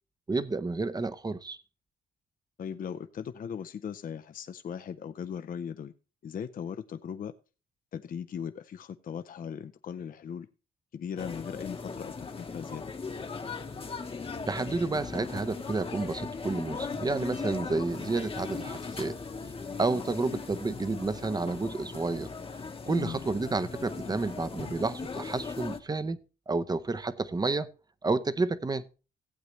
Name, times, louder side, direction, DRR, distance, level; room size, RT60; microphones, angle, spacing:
voice 1, 0.3-1.6 14.5-19.2 19.8-22.3 22.8-26.2 26.5-27.7 28.0-28.8, right 3 dB, 20° right, 0.7 m, -30 dB
voice 2, 2.6-5.9 6.2-7.3 7.9-10.5 10.9-12.9 22.9-23.2, left 7 dB, 45° left, 0.6 m, -38 dB
sound 1, 11.2-25.8, left 4 dB, 30° left, 1.0 m, -38 dB
15.0 x 8.1 x 3.1 m
cardioid pair, 90°, 20 cm